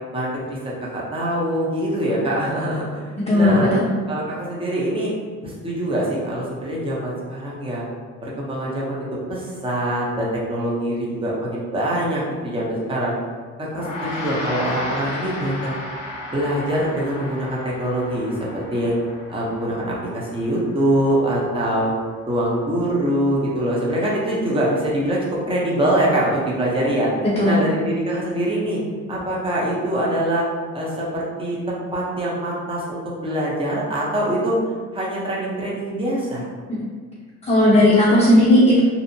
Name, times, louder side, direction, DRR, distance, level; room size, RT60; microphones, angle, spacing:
voice 1, 0.1-3.7 4.1-5.1 5.4-7.8 8.2-13.1 13.6-15.8 16.3-18.9 19.3-21.9 22.3-27.1 27.4-28.8 29.1-30.5 30.7-34.6 34.9-36.5, right 1 dB, 20° right, -5 dB, 0.7 m, -24 dB
voice 2, 3.3-3.9 27.4-27.6 36.7-36.9 37.4-38.8, left 1 dB, 20° left, -10 dB, 0.7 m, -15 dB
Gong, 13.7-23.3, left 2 dB, 85° left, 0.5 m, -35 dB
2.7 x 2.0 x 2.6 m, 1.5 s
cardioid pair, 90°, 30 cm